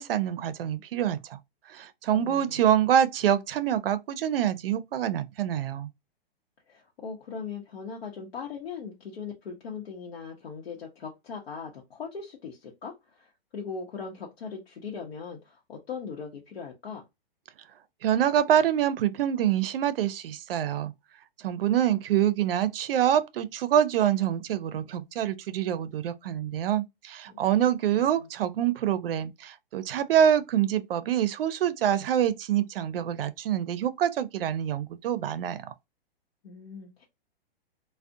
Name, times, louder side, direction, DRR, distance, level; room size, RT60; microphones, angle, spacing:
voice 1, 0.0-1.4 1.7-5.9 18.0-20.9 21.4-35.6, right 10 dB, 70° right, 0.5 m, -26 dB
voice 2, 2.1-2.6 6.7-17.0 27.3-27.4 27.9-28.3 36.4-37.1, left 5 dB, 85° left, 0.8 m, -40 dB
2.4 x 2.1 x 2.6 m
hypercardioid pair, 155°, 30 cm